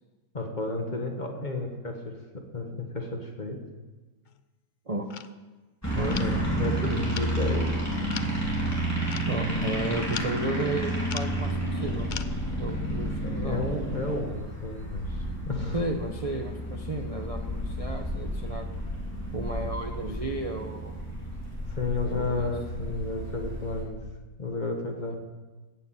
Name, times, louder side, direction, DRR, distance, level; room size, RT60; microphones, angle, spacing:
voice 1, 0.3-3.6 6.2-7.8 13.2-15.8 21.7-24.0 24.4-25.1, left 2 dB, 30° left, 2 dB, 1.6 m, -32 dB
sound 1, 4.3-4.4 5.1-5.3 6.1-6.4 7.1-7.4 8.1-8.3 9.1-9.3 10.1-10.5 11.1-11.4 12.1-12.2, left 8 dB, 85° left, 0.4 m, -38 dB
sound 2, 5.8-23.8, right 1 dB, 10° left, 3.4 m, -31 dB
voice 2, 5.9-6.3 9.3-12.1 12.6-13.6 15.7-18.7 19.3-20.9 22.1-22.4, right 2 dB, 30° right, 3 dB, 0.8 m, -33 dB
17.0 x 6.8 x 7.7 m, 1.2 s
omnidirectional pair, 1.6 m